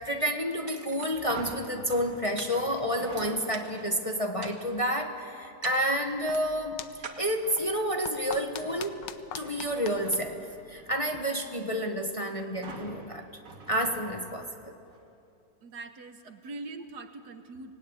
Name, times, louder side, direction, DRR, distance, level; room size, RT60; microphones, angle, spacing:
voice 1, 0.0-6.8 7.2-9.0 9.3-13.3 13.7-14.7, equal, 20° left, 3 dB, 1.3 m, -30 dB
sound 1, 0.7-1.6 2.4-3.2 3.5-4.0 4.4-4.9 5.6-6.2 7.0-7.9, right 5 dB, 50° right, 1.9 m, -45 dB
sound 2, 1.3-3.8 4.3-4.7 7.1-7.8 8.2-11.1 12.6-14.6 14.9-15.0, right 3 dB, 80° right, 3.0 m, -47 dB
sound 3, 6.0-11.3, left 9 dB, 85° left, 1.5 m, -45 dB
voice 2, 15.6-17.7, right 3 dB, 65° right, 7 dB, 1.8 m, -42 dB
24.5 x 19.0 x 9.8 m, 2.6 s
omnidirectional pair, 1.9 m